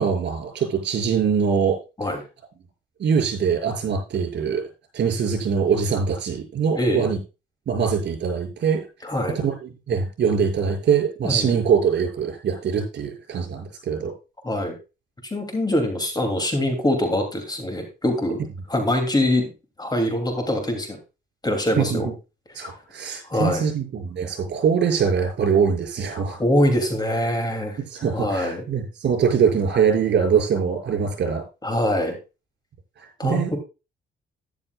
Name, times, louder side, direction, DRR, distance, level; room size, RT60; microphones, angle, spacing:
voice 1, 0.0-1.8 3.0-4.7 4.9-7.2 7.7-8.8 9.4-14.1 21.8-22.1 22.5-26.4 27.8-31.4 33.0-33.5, right 6 dB, 60° right, 3 dB, 6.3 m, -23 dB
voice 2, 6.7-7.1 9.0-9.4 11.2-11.6 14.4-14.8 15.2-18.4 18.7-19.5 19.8-21.0 21.4-22.1 22.6-22.7 23.2-23.7 26.4-27.8 28.1-28.6 31.6-32.2 33.2-33.6, left 1 dB, 20° left, 5 dB, 2.9 m, -23 dB
13.0 x 11.0 x 2.4 m, 0.29 s
cardioid pair, 90°, 20 cm